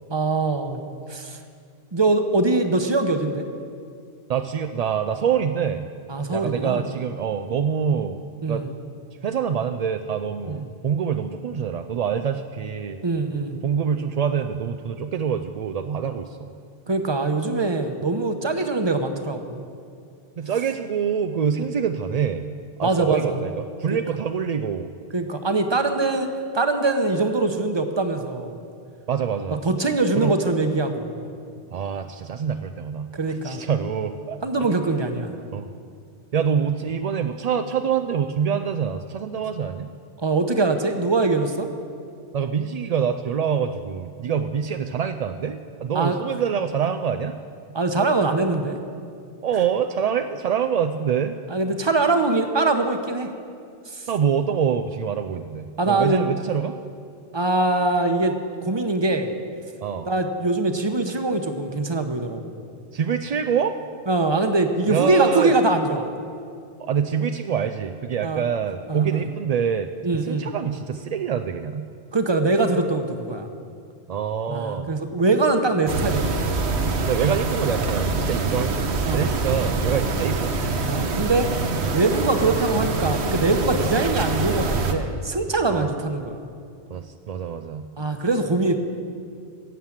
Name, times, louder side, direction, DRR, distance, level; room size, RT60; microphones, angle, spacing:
voice 1, 0.1-1.4 1.9-3.5 6.1-6.8 8.4-8.7 10.5-10.6 13.0-13.6 16.9-19.6 22.8-23.4 23.9-24.0 25.1-26.3 26.5-28.6 29.6-31.3 33.1-33.6 34.4-35.3 40.2-41.7 45.9-46.2 47.7-48.8 51.5-53.3 53.9-54.1 55.8-56.3 57.3-58.3 58.6-59.3 60.1-62.5 64.1-66.0 68.2-68.4 68.9-69.3 70.0-70.5 72.1-73.5 74.5-76.4 79.0-79.5 79.9-80.1 80.8-81.6 81.9-86.4 88.0-88.8, right 2 dB, 25° right, 6 dB, 0.9 m, -23 dB
voice 2, 4.3-5.9 6.3-8.2 8.5-8.6 9.2-13.0 13.6-16.5 20.4-22.5 22.8-23.5 23.8-24.9 29.1-29.6 30.2-30.3 31.7-34.4 35.5-35.7 36.3-39.9 42.3-47.3 49.4-51.4 54.1-56.8 59.8-60.1 62.9-63.8 64.9-65.5 66.8-69.9 70.2-71.9 74.1-74.9 77.1-80.6 83.8-83.9 85.7-85.9 86.9-87.9, right 7 dB, 60° right, 7 dB, 0.4 m, -25 dB
sound 1, 75.9-84.9, right 3 dB, 75° right, 1.2 m, -25 dB
17.0 x 7.4 x 7.4 m, 2.3 s
omnidirectional pair, 1.1 m